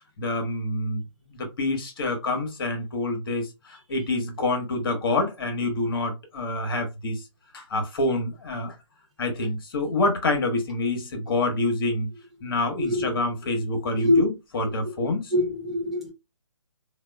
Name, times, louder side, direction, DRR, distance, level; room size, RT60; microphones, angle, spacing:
voice 1, 0.2-7.2 7.5-8.7 9.2-12.1 12.4-15.3, left 2 dB, 45° left, 1.2 m, -27 dB
voice 2, 12.4-14.2 15.0-16.1, left 1 dB, ahead, 0.6 m, -26 dB
4.2 x 2.4 x 2.2 m
figure-of-eight pair, 155°, 17 cm